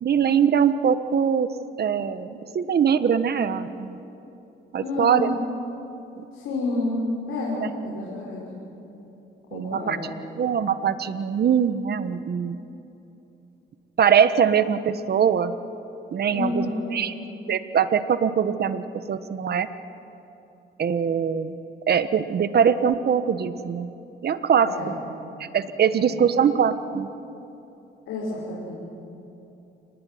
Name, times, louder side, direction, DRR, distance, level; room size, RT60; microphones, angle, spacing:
voice 1, 0.0-1.5 1.8-2.3 2.5-4.0 4.7-5.3 6.2-6.3 9.5-10.0 10.4-12.6 14.0-15.5 16.1-17.1 17.5-19.7 20.8-21.5 21.9-23.9 24.2-24.7 25.5-27.1, right 7 dB, 55° right, 11 dB, 1.4 m, -22 dB
voice 2, 4.8-5.5 6.3-8.6 9.5-10.1 16.3-17.2 24.5-25.0 26.0-26.2 28.1-28.7, left 2 dB, 85° left, -5 dB, 6.2 m, -29 dB
29.0 x 19.5 x 9.4 m, 2.9 s
cardioid pair, 90°, 20 cm